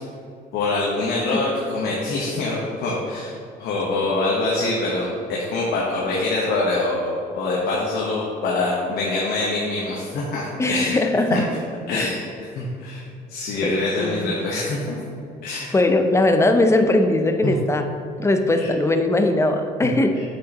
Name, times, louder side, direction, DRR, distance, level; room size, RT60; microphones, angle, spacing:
voice 1, 0.5-11.0 11.3-11.4 11.9-12.3 12.5-13.0 13.3-15.0 15.4-15.7 17.4-17.5 18.6-18.7 19.8-20.2, left 2 dB, 70° left, -4 dB, 1.2 m, -25 dB
voice 2, 10.6-11.5 11.9-12.1 13.6-14.3 15.7-17.8 18.2-20.2, left 2 dB, 15° left, 6 dB, 0.6 m, -20 dB
8.2 x 6.3 x 3.0 m, 2.5 s
cardioid pair, 110°, 17 cm